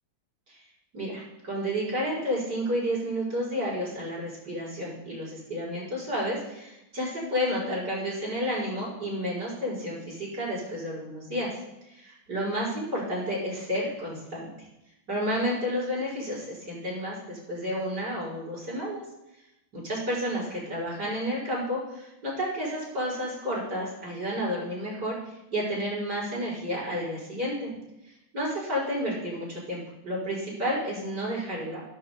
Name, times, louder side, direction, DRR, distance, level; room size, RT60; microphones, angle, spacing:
voice 1, 0.9-11.5 11.9-14.7 15.1-19.0 19.7-27.7 28.0-31.8, equal, 55° right, -6 dB, 5.6 m, -31 dB
16.0 x 14.0 x 2.2 m, 0.92 s
omnidirectional pair, 2.2 m